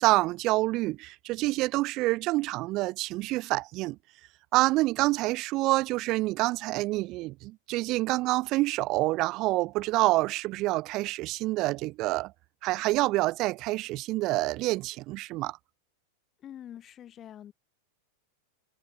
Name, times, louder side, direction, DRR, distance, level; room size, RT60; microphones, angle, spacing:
voice 1, 0.0-4.0 4.5-12.3 12.6-15.6, right 19 dB, 40° right, 0.3 m, -27 dB
voice 2, 16.4-17.5, left 10 dB, 30° left, 3.7 m, -45 dB
figure-of-eight pair, 90°, 0 cm